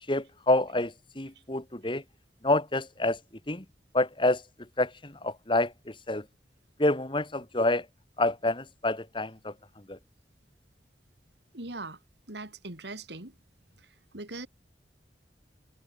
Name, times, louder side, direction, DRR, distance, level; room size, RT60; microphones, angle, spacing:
voice 1, 0.1-2.0 2.4-3.2 3.5-3.6 3.9-4.4 4.8-6.2 6.8-7.9 8.2-9.5 9.9-10.0, left 2 dB, 30° left, 2.0 m, -27 dB
voice 2, 11.5-12.0 12.3-13.3 14.1-14.5, right 2 dB, 75° right, 3.3 m, -40 dB
head